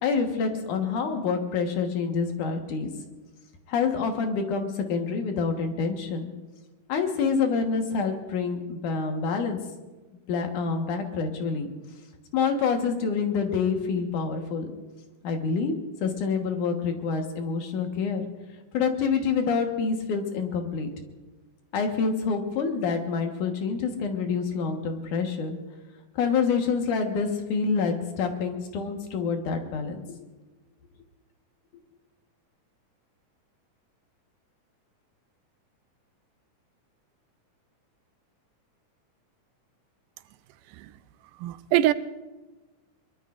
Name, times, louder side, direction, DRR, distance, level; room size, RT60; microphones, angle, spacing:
voice 1, 0.0-2.9 3.7-6.3 6.9-9.6 10.3-11.7 12.3-14.7 15.2-15.7 16.0-18.2 18.7-20.9 21.7-25.6 26.2-30.0, left 5 dB, 75° left, 4 dB, 2.9 m, -27 dB
voice 2, 41.4-41.9, right 13 dB, 90° right, 13 dB, 2.2 m, -23 dB
23.5 x 22.5 x 2.6 m, 1.2 s
omnidirectional pair, 3.6 m